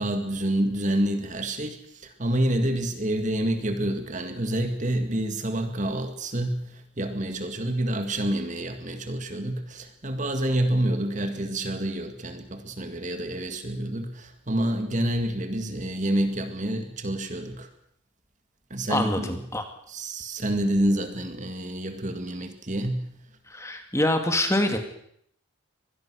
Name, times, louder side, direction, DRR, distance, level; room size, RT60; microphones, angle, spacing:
voice 1, 0.0-17.7 18.7-19.4 19.9-23.1, right 1 dB, 35° right, 7 dB, 2.2 m, -28 dB
voice 2, 18.9-19.6 23.5-24.8, left 1 dB, 15° left, 6 dB, 2.3 m, -25 dB
24.5 x 20.5 x 6.4 m, 0.69 s
head